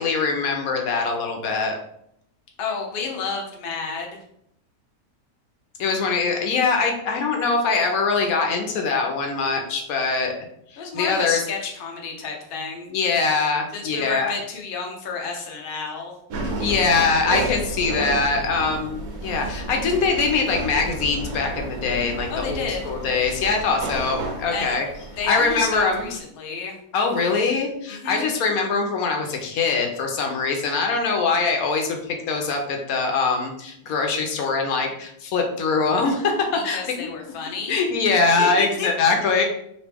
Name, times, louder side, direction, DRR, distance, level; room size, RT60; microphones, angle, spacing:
voice 1, 0.0-1.8 5.8-10.3 10.7-11.4 12.9-14.3 16.6-24.8 25.3-26.1 26.9-37.1 37.7-39.4, left 4 dB, 75° left, 3 dB, 1.1 m, -23 dB
voice 2, 2.6-4.2 10.8-12.9 13.7-16.1 22.3-22.8 24.5-24.8 25.2-26.7 27.9-28.2 36.5-37.8 38.4-38.9, left 4 dB, 50° left, 0 dB, 0.7 m, -30 dB
sound 1, 16.3-26.2, right 2 dB, 75° right, 1.2 m, -32 dB
3.1 x 2.8 x 3.3 m, 0.72 s
omnidirectional pair, 1.6 m